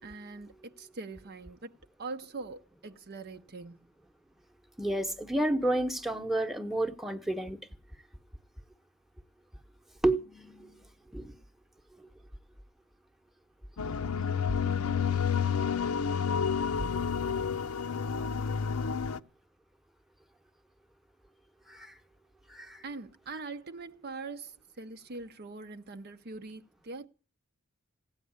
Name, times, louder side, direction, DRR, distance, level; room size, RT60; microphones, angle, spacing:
voice 1, 0.0-3.8 22.8-27.1, right 3 dB, 45° right, 0.7 m, -43 dB
voice 2, 4.8-7.6 10.0-11.3 12.0-12.1 14.1-14.2 16.9-17.5 21.7-22.0 22.5-22.8, right 1 dB, ahead, 1.0 m, -31 dB
sound 1, 13.8-19.2, left 6 dB, 80° left, 0.7 m, -30 dB
16.0 x 9.2 x 8.6 m
head